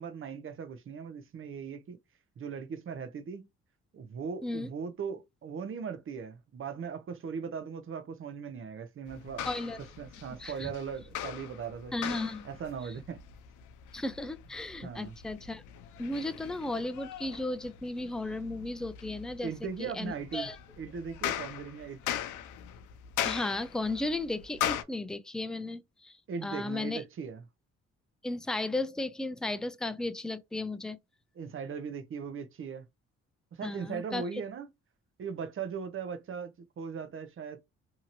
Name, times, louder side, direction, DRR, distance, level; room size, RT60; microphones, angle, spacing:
voice 1, 0.0-2.0 2.4-3.5 3.9-9.5 9.8-11.9 12.4-13.2 14.8-15.2 19.4-20.5 20.8-22.0 26.3-27.4 31.4-32.9 33.5-34.7 35.2-37.6, right 6 dB, 45° right, 0.7 m, -39 dB
sound 1, 9.1-24.8, left 10 dB, 85° left, 0.5 m, -40 dB
voice 2, 9.5-9.8 10.4-10.7 11.9-12.5 13.9-15.6 16.0-19.5 19.8-20.6 23.2-26.2 26.4-27.0 28.2-31.0 33.6-34.4, left 2 dB, ahead, 0.3 m, -35 dB
2.8 x 2.8 x 2.6 m
cardioid pair, 90°, 30 cm